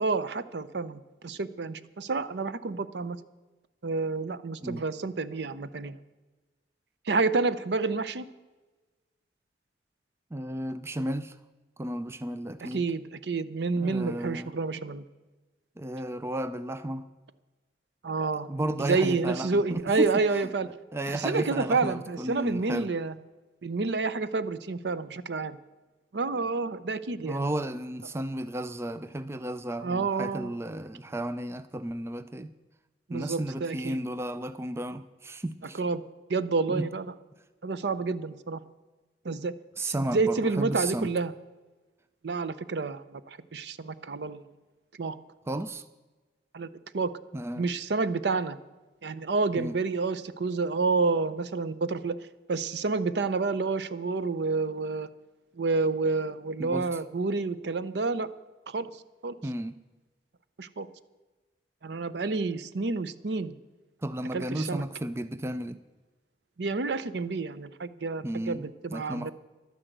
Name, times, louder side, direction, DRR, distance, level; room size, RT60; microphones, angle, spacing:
voice 1, 0.0-3.2 3.8-6.0 7.1-8.2 12.6-15.0 18.0-18.5 18.8-20.7 21.1-23.2 23.6-25.6 26.1-27.4 29.8-30.5 33.1-34.0 35.7-36.0 36.3-37.1 37.6-38.6 39.2-39.5 39.8-41.3 42.2-44.4 45.0-45.2 46.5-46.7 46.9-47.1 47.6-48.6 49.0-52.2 52.5-55.1 55.6-58.3 58.7-58.9 59.2-59.3 60.6-60.9 61.8-63.5 64.3-64.8 66.6-69.3, right 4 dB, 65° right, 15 dB, 0.6 m, -29 dB
voice 2, 10.3-11.3 11.8-12.8 13.8-14.5 15.8-17.0 18.2-20.1 20.9-22.9 27.2-32.5 33.1-35.8 36.7-36.9 39.8-41.1 45.5-45.8 47.3-47.7 49.5-49.7 56.6-56.8 59.4-59.7 64.0-65.8 68.2-69.3, right 1 dB, 15° right, 12 dB, 0.4 m, -33 dB
11.5 x 9.9 x 7.9 m, 1.2 s
head